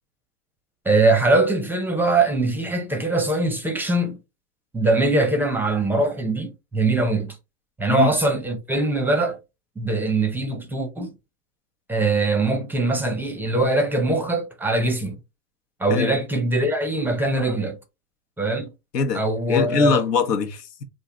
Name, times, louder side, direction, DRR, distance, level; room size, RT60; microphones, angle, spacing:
voice 1, 0.9-4.2 4.7-7.4 7.8-9.4 9.8-11.1 11.9-15.2 15.8-17.8 18.4-18.7 19.1-20.0, right 2 dB, 5° right, 0.5 m, -22 dB
voice 2, 18.9-20.8, left 5 dB, 85° left, 0.9 m, -23 dB
3.7 x 2.6 x 2.9 m
hypercardioid pair, 105°, 47 cm